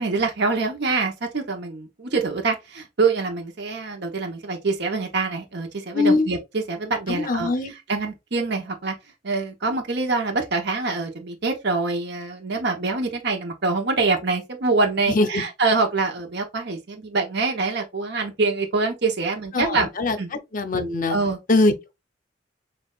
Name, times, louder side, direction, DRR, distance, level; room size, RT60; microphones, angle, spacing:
voice 1, 0.0-8.9 9.2-19.9 20.2-20.3 21.1-21.4, right 3 dB, 60° right, 0.9 m, -25 dB
voice 2, 5.9-6.3 7.1-7.7 15.1-15.4 19.5-20.2 20.5-21.2 21.5-21.9, left 3 dB, 45° left, 0.7 m, -22 dB
6.4 x 2.5 x 2.4 m
head